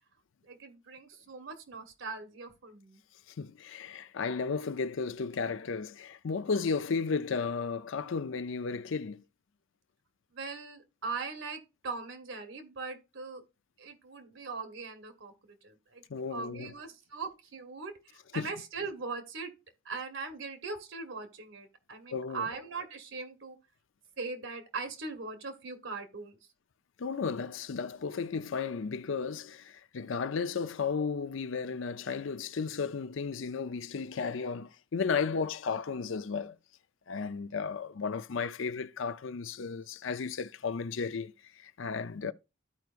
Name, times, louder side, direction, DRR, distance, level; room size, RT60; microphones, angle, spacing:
voice 1, 0.4-3.0 10.3-13.4 13.8-16.0 16.3-19.5 19.8-23.6 24.2-26.4, right 4 dB, 70° right, 1.3 m, -40 dB
voice 2, 3.4-9.2 16.1-16.7 18.4-18.5 22.1-22.5 27.0-36.6 37.1-42.3, left 5 dB, 75° left, 0.5 m, -34 dB
13.5 x 4.6 x 2.5 m
head